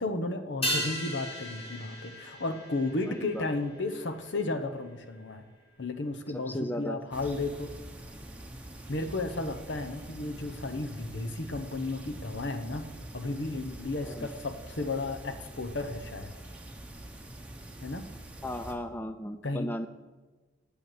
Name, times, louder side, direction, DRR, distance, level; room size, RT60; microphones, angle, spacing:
voice 1, 0.0-5.5 5.8-7.7 8.9-12.9 13.1-16.3 17.8-18.0 19.4-19.9, left 2 dB, 70° left, 7 dB, 1.0 m, -33 dB
sound 1, 0.6-5.3 5.6-5.7, left 1 dB, 30° left, 2.0 m, -37 dB
voice 2, 3.1-3.5 6.3-7.0 14.1-14.3 18.4-19.9, left 1 dB, 10° left, 9 dB, 0.4 m, -36 dB
sound 2, 7.1-18.7, right 1 dB, 5° right, 1.2 m, -45 dB
9.2 x 8.5 x 7.9 m, 1.2 s
head